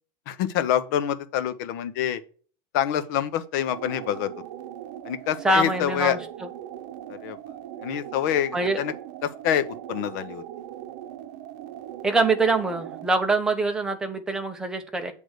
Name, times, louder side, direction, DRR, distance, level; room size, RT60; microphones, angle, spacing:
voice 1, 0.3-2.2 2.7-4.3 5.0-6.2 7.1-7.4 7.8-8.9 9.2-10.4, left 10 dB, 55° left, 0.8 m, -26 dB
sound 1, 3.6-13.2, right 11 dB, 55° right, 0.8 m, -40 dB
voice 2, 5.4-6.2 8.5-8.8 12.0-15.1, right 3 dB, 5° right, 0.8 m, -24 dB
7.8 x 3.6 x 6.3 m
supercardioid pair, 175°, 12 cm